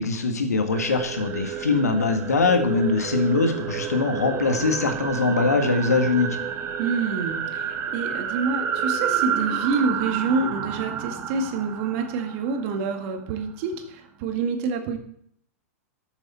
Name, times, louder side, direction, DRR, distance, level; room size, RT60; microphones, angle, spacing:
voice 1, 0.0-6.4, left 3 dB, 85° left, 6 dB, 1.8 m, -22 dB
sound 1, 0.7-13.4, right 8 dB, 30° right, 1.4 m, -30 dB
voice 2, 6.8-15.0, right 4 dB, 50° right, 6 dB, 1.9 m, -27 dB
13.5 x 7.1 x 4.3 m, 0.68 s
hypercardioid pair, 105°, 8 cm